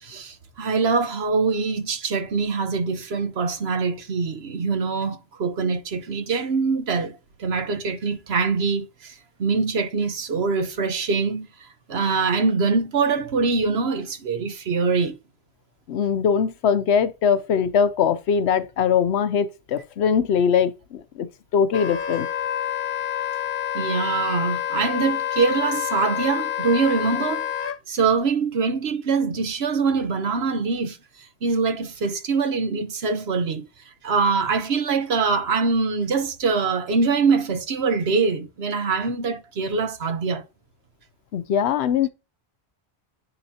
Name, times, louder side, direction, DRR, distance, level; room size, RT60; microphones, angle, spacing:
voice 1, 0.0-15.2 23.7-27.5 27.9-40.4, right 4 dB, 75° right, 1.2 m, -24 dB
voice 2, 15.9-21.3 21.5-22.3 41.3-42.1, left 7 dB, 90° left, 1.0 m, -21 dB
Wind instrument woodwind instrument, 21.7-27.8, left 10 dB, 60° left, 0.9 m, -28 dB
9.7 x 3.9 x 2.8 m
omnidirectional pair, 1.1 m